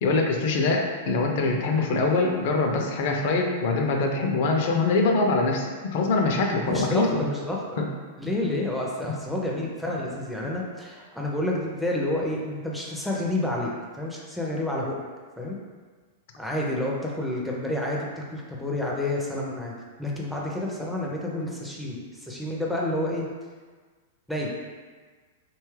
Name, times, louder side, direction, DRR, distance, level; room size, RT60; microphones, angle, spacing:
voice 1, 0.0-7.2 7.8-7.9 9.0-9.1, left 3 dB, 60° left, 2 dB, 0.4 m, -24 dB
voice 2, 6.7-7.8 8.2-13.7 14.0-15.0 15.4-15.6 16.4-23.2 24.3-24.5, left 1 dB, ahead, -3 dB, 0.4 m, -29 dB
2.8 x 2.3 x 3.1 m, 1.4 s
hypercardioid pair, 115°, 0 cm